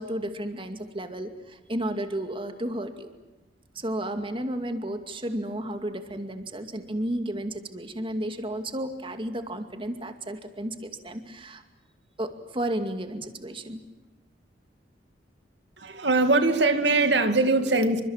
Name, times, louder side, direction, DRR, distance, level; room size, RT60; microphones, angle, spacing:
voice 1, 0.0-3.1 3.7-11.6 12.2-13.8, right 1 dB, 30° right, 2.3 m, -32 dB
voice 2, 15.8-18.0, right 2 dB, 70° right, 2.4 m, -22 dB
29.0 x 25.5 x 7.4 m
head